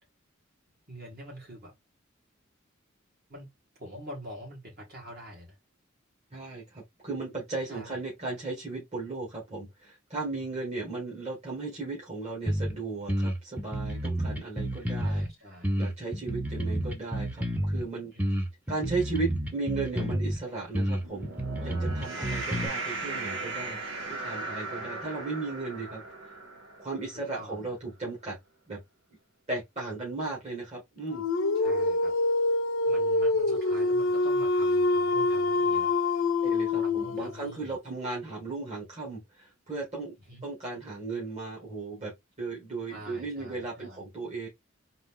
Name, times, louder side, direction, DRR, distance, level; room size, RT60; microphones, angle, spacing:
voice 1, 0.9-1.7 3.3-3.5 3.8-5.6 7.7-8.0 10.3-10.6 14.9-15.7 18.1-18.2 27.3-27.7 31.5-32.1 32.9-35.9 36.8-37.8 40.3-40.5 42.9-44.0, equal, 50° right, 2.4 m, -45 dB
voice 2, 6.3-15.3 15.8-18.3 18.7-21.3 21.6-23.8 24.0-26.4 26.8-28.4 28.7-28.8 29.5-31.2 36.4-40.1 40.4-42.1 42.4-44.5, right 3 dB, 35° right, 1.9 m, -36 dB
sound 1, 12.5-12.7 13.1-15.3 15.6-17.8 18.2-20.4 20.7-22.7, equal, 10° right, 0.8 m, -30 dB
sound 2, 20.8-27.3, right 3 dB, 75° right, 1.3 m, -37 dB
Dog, 31.1-37.4, left 2 dB, 90° left, 0.7 m, -26 dB
4.0 x 3.0 x 3.7 m
head